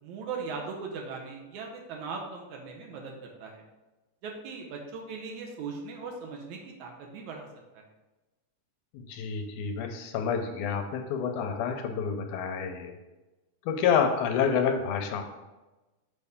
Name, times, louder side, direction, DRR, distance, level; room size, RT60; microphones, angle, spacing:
voice 1, 0.0-3.6 4.2-7.5 7.7-7.8, right 4 dB, 75° right, 1 dB, 2.1 m, -39 dB
voice 2, 8.9-12.9 13.7-15.2, left 7 dB, 80° left, 5 dB, 2.0 m, -28 dB
6.6 x 5.3 x 3.5 m, 1.1 s
omnidirectional pair, 3.7 m